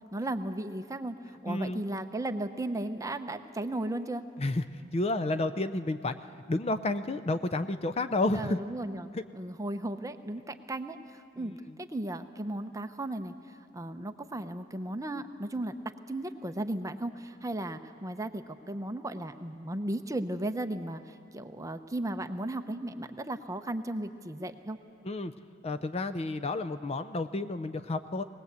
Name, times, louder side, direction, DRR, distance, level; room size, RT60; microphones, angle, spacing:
voice 1, 0.1-1.2 1.4-4.3 8.3-11.5 11.8-15.7 16.1-24.8, right 1 dB, 15° right, 8 dB, 0.7 m, -35 dB
voice 2, 1.5-1.8 4.4-4.6 4.9-6.1 6.5-8.6 9.1-9.2 11.4-11.6 25.0-25.3 25.6-28.2, left 2 dB, 30° left, 11 dB, 0.5 m, -31 dB
21.5 x 19.5 x 8.2 m, 2.4 s
head